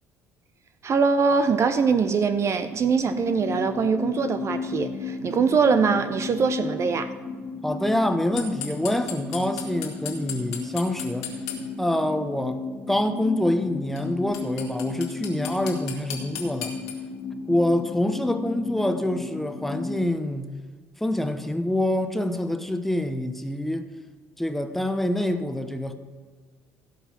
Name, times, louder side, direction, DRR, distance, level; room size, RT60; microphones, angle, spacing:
voice 1, 0.8-7.1, right 5 dB, 40° right, 0.7 m, -22 dB
sound 1, 3.0-20.1, left 4 dB, 50° left, 1.6 m, -34 dB
voice 2, 7.6-11.3 11.8-12.6 12.9-16.7 17.5-20.5 21.0-23.9 24.4-25.9, left 1 dB, 5° left, 1.0 m, -26 dB
sound 2, 8.4-11.6 14.0-14.1 14.3-16.9, left 10 dB, 75° left, 1.9 m, -34 dB
16.0 x 5.4 x 6.0 m
hypercardioid pair, 55°, 8 cm